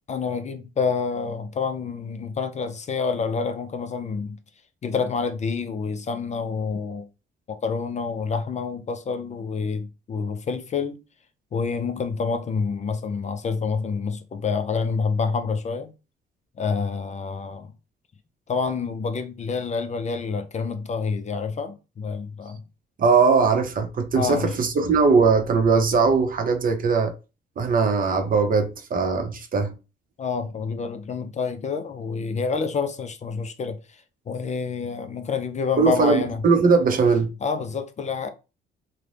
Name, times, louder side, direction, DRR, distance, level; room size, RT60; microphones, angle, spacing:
voice 1, 0.1-4.4 4.8-7.1 7.5-11.0 11.5-15.9 16.6-17.7 18.5-22.6 24.1-24.5 30.2-36.4 37.4-38.3, left 5 dB, 35° left, 0.4 m, -28 dB
voice 2, 23.0-27.1 27.6-29.7 35.8-37.3, right 4 dB, 45° right, 0.6 m, -20 dB
2.5 x 2.1 x 3.2 m
cardioid pair, 90°, 20 cm